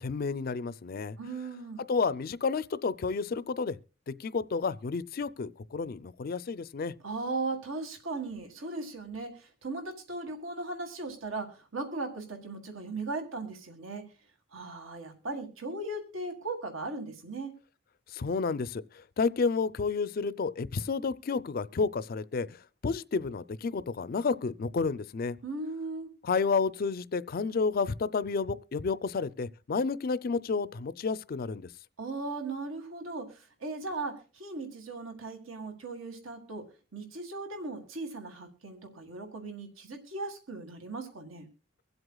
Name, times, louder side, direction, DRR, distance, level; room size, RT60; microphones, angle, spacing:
voice 1, 0.0-1.2 1.9-3.8 4.1-6.9 18.1-18.8 19.2-22.6 22.8-25.4 26.2-31.7, left 4 dB, 45° left, 0.4 m, -30 dB
voice 2, 1.2-1.8 7.0-14.1 14.5-17.5 25.4-26.1 32.0-36.7 36.9-41.5, right 3 dB, 85° right, 1.7 m, -38 dB
23.5 x 7.9 x 2.3 m
head